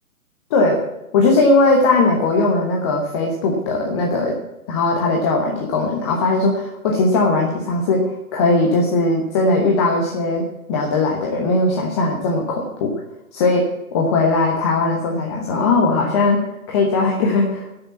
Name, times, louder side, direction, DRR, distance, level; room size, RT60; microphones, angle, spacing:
voice 1, 0.5-0.8 1.1-4.4 4.7-12.9 13.3-13.7 13.9-16.4 16.7-17.7, left 3 dB, 20° left, 0 dB, 1.1 m, -19 dB
12.5 x 6.7 x 8.3 m, 0.96 s
figure-of-eight pair, 135°, 45 cm